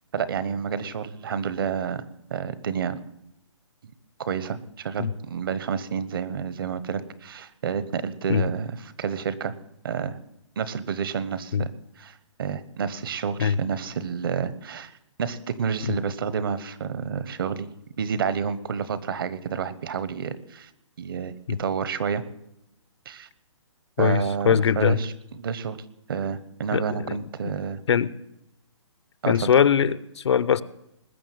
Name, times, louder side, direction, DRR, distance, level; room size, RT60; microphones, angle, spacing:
voice 1, 0.1-2.0 2.3-3.0 4.2-8.7 9.0-9.5 9.8-10.2 10.6-11.7 12.0-14.9 15.2-17.7 18.0-20.7 21.0-22.2 23.0-23.3 24.0-25.8 26.1-27.8 29.2-29.5, right 6 dB, 45° right, 15 dB, 1.1 m, -29 dB
voice 2, 24.0-25.0 26.7-27.2 27.9-28.1 29.3-30.6, left 7 dB, 60° left, 18 dB, 0.7 m, -21 dB
20.0 x 6.9 x 9.3 m, 0.83 s
hypercardioid pair, 170°, 16 cm